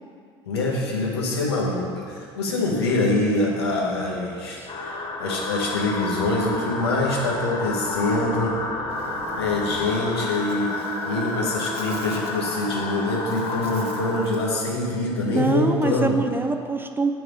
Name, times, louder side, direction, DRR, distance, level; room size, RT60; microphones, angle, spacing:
voice 1, 0.5-8.6 9.3-10.8 11.0-16.2, left 2 dB, 85° left, -3 dB, 1.1 m, -25 dB
sound 1, 1.3-9.9, right 1 dB, 70° right, 1.5 m, -44 dB
sound 2, 4.7-14.3, left 3 dB, 40° left, 0.9 m, -31 dB
Buzz, 8.9-14.5, right 3 dB, 50° right, 0.8 m, -40 dB
voice 2, 15.3-17.1, right 3 dB, 15° right, 6 dB, 0.5 m, -23 dB
8.4 x 3.5 x 4.9 m, 2.2 s
hypercardioid pair, 65°, 13 cm